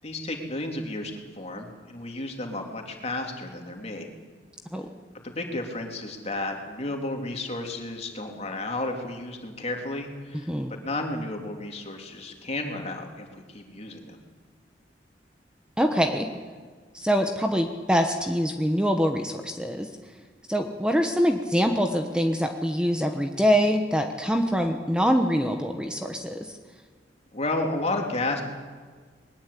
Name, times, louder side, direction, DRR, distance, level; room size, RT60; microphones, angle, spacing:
voice 1, 0.0-4.1 5.2-14.2 27.3-28.4, left 2 dB, 40° left, 2 dB, 3.3 m, -32 dB
voice 2, 15.8-16.3 16.9-19.9 20.5-26.5, equal, 5° right, 5 dB, 1.2 m, -24 dB
21.0 x 20.0 x 8.6 m, 1.5 s
head